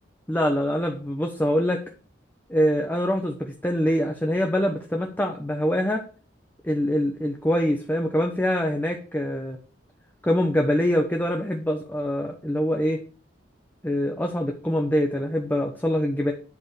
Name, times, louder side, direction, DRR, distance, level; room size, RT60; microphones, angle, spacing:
voice 1, 0.3-1.8 2.5-6.0 6.6-9.6 10.2-13.0 13.8-16.3, equal, 10° left, 2 dB, 1.1 m, -24 dB
11.0 x 5.4 x 6.8 m, 0.39 s
head